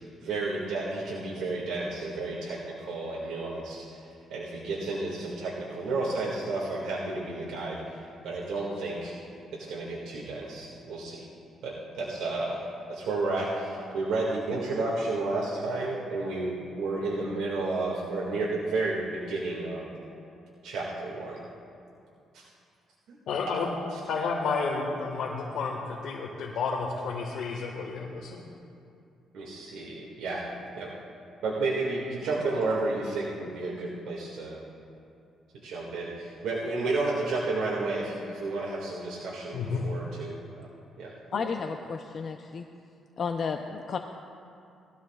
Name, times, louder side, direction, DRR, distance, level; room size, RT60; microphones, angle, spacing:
voice 1, 0.2-4.0 4.3-9.1 9.5-11.3 11.6-12.6 12.9-19.8 20.6-21.4 22.3-22.4 23.1-23.2 29.3-30.4 30.8-30.9 31.4-34.6 35.5-40.4 41.0-41.5, right 2 dB, 85° right, -6 dB, 2.1 m, -32 dB
voice 2, 23.3-23.7 24.1-28.4 39.5-39.9, left 4 dB, 75° left, -3 dB, 1.6 m, -31 dB
voice 3, 41.3-42.6 43.2-44.0, left 5 dB, 50° left, 4 dB, 0.6 m, -32 dB
20.5 x 14.0 x 2.4 m, 2.5 s
cardioid pair, 90°, 0 cm